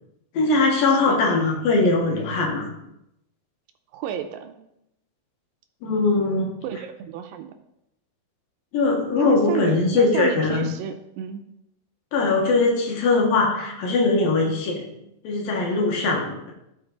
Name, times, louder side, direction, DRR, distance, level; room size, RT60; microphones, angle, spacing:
voice 1, 0.3-2.7 5.8-6.5 8.7-10.7 12.1-14.9 15.2-16.5, left 3 dB, 70° left, 0 dB, 3.0 m, -21 dB
voice 2, 3.9-4.6 6.6-7.5 9.2-11.4, right 9 dB, 80° right, 7 dB, 2.1 m, -31 dB
13.0 x 4.3 x 3.9 m, 0.82 s
omnidirectional pair, 4.4 m